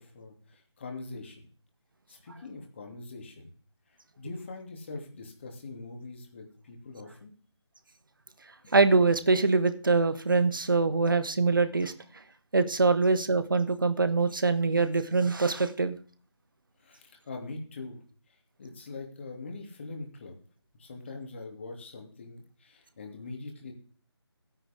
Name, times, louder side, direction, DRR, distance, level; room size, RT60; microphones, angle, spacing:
voice 1, 0.0-1.4 2.1-3.5 3.9-7.3 16.8-18.0 18.3-20.4 20.7-23.7, left 3 dB, 25° left, 2 dB, 2.8 m, -43 dB
voice 2, 8.7-11.9 12.5-15.9, right 3 dB, 50° right, 12 dB, 1.4 m, -24 dB
16.0 x 10.0 x 3.6 m, 0.43 s
figure-of-eight pair, 160°, 14 cm